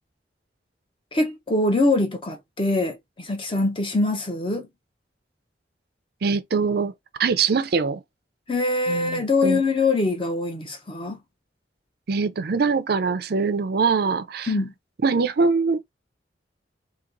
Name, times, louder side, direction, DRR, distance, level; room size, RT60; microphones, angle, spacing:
voice 1, 1.1-4.7 8.5-11.2 14.5-14.7, left 2 dB, 30° left, 0.8 m, -23 dB
voice 2, 6.2-6.9 7.2-8.0 8.9-9.6 12.1-14.5 15.0-15.8, right 4 dB, 60° right, 0.5 m, -23 dB
2.9 x 2.8 x 3.8 m
head